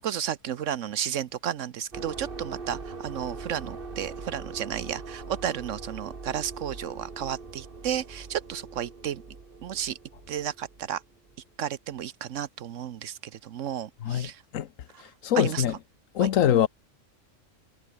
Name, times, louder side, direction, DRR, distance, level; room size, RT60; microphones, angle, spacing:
voice 1, 0.0-9.2 9.6-10.0 10.3-11.0 11.6-14.4 14.9-15.0 15.3-15.6 16.2-16.3, right 10 dB, 75° right, 1.1 m, -33 dB
sound 1, 1.9-11.4, right 4 dB, 45° right, 2.1 m, -41 dB
voice 2, 14.0-14.7 15.0-15.7 16.1-16.7, left 10 dB, 85° left, 1.3 m, -24 dB
omnidirectional pair, 1.3 m